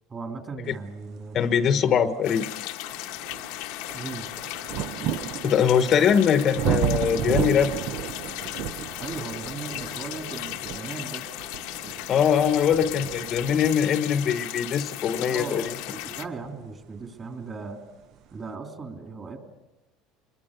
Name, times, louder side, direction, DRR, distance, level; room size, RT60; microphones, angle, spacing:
voice 1, 0.1-1.4 1.7-1.8 2.1-2.4 3.9-4.3 9.0-11.3 15.2-17.8 18.3-19.4, right 4 dB, 25° right, 4 dB, 3.3 m, -37 dB
voice 2, 1.3-2.5 5.4-7.7 12.1-15.7, left 8 dB, 40° left, 10 dB, 1.1 m, -22 dB
sound 1, 1.8-1.9 2.5-17.1 18.0-18.1, right 10 dB, 55° right, 0.8 m, -33 dB
sound 2, 2.2-16.3, left 16 dB, 80° left, 1.2 m, -36 dB
26.0 x 22.0 x 6.7 m, 1.1 s
cardioid pair, 130°, 0 cm